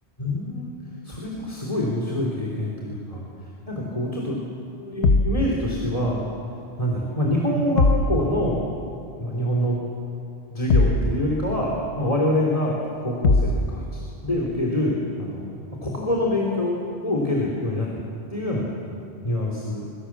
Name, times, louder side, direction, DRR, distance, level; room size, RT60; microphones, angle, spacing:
voice 1, 0.2-0.7 1.0-4.4 4.8-6.2 6.8-8.7 9.2-9.8 10.5-15.4 15.8-16.8 17.0-17.9 18.3-18.7 19.2-19.8, left 1 dB, 30° left, -2 dB, 3.4 m, -25 dB
sound 1, 5.0-5.4 7.8-8.1 10.7-11.1 13.2-13.6, left 3 dB, 85° left, 1.5 m, -18 dB
26.0 x 23.5 x 7.4 m, 2.7 s
omnidirectional pair, 1.1 m